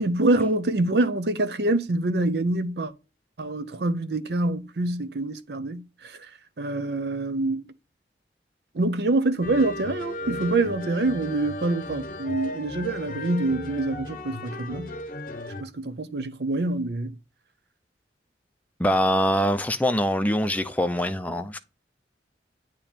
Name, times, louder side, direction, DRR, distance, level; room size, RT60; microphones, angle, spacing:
voice 1, 0.0-2.9 3.4-6.2 6.6-7.7 8.7-14.9 15.6-17.1, right 2 dB, 65° right, 0.6 m, -26 dB
sound 1, 9.4-15.6, left 1 dB, 50° left, 0.8 m, -36 dB
voice 2, 18.8-21.6, equal, 10° left, 0.5 m, -23 dB
8.5 x 3.0 x 4.4 m
head